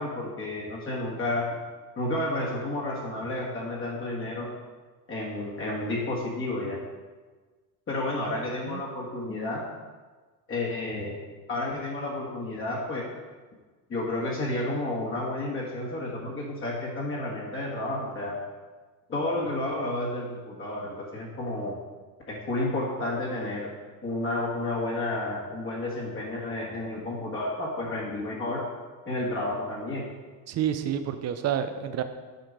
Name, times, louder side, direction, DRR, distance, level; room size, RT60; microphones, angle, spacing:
voice 1, 0.0-1.5 2.0-4.5 5.1-6.8 7.9-9.6 10.5-11.2 11.5-13.1 13.9-18.4 19.1-21.7 22.3-23.7 24.0-28.6 29.0-30.0, left 2 dB, 25° left, -4 dB, 1.5 m, -31 dB
voice 2, 8.3-8.8 30.5-32.0, right 9 dB, 35° right, 9 dB, 0.6 m, -30 dB
7.8 x 4.3 x 5.2 m, 1.4 s
supercardioid pair, 125°, 47 cm